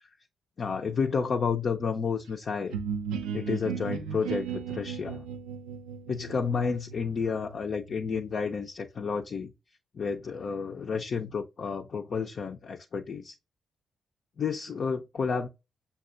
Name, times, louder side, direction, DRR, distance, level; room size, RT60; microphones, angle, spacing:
voice 1, 0.6-2.8 3.3-5.3 6.1-9.5 9.9-13.4 14.4-15.5, left 5 dB, 55° left, 0.5 m, -31 dB
sound 1, 2.7-8.3, right 7 dB, 85° right, 0.4 m, -36 dB
6.7 x 2.3 x 2.4 m
hypercardioid pair, 45°, 0 cm